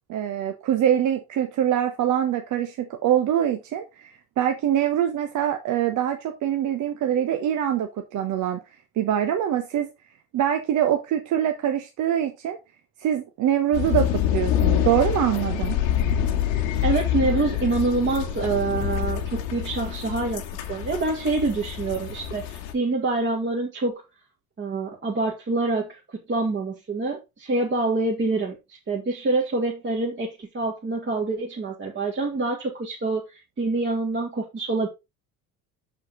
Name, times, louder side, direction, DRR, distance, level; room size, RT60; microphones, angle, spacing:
voice 1, 0.1-8.6 9.0-9.9 10.3-12.6 13.0-15.8, right 10 dB, 40° right, 1.0 m, -24 dB
sound 1, 13.7-22.7, left 10 dB, 60° left, 1.5 m, -26 dB
voice 2, 16.8-20.4 20.7-23.9 24.6-34.9, right 3 dB, 25° right, 1.9 m, -26 dB
6.9 x 6.6 x 3.8 m
figure-of-eight pair, 60°, 46 cm